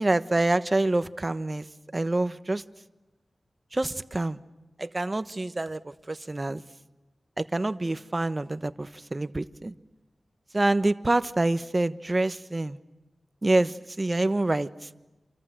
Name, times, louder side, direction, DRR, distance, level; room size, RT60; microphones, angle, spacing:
voice 1, 0.0-1.6 1.9-2.6 3.7-4.4 4.8-5.8 6.1-6.6 7.4-9.7 10.5-12.8 13.4-14.9, right 2 dB, 30° right, 12 dB, 1.1 m, -26 dB
28.5 x 26.0 x 7.8 m, 1.1 s
wide cardioid pair, 75°, 0 cm